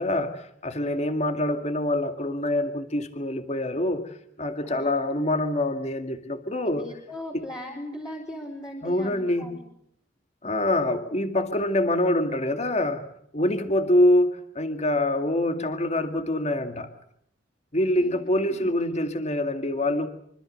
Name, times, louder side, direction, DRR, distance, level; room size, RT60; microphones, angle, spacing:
voice 1, 0.0-6.8 7.3-7.4 8.8-9.6 10.4-16.9 17.7-20.1, left 1 dB, 40° left, 7 dB, 2.3 m, -25 dB
voice 2, 6.7-9.5 18.0-18.1 18.4-18.6, left 1 dB, 20° left, -1 dB, 4.4 m, -38 dB
26.0 x 25.0 x 6.7 m, 0.69 s
head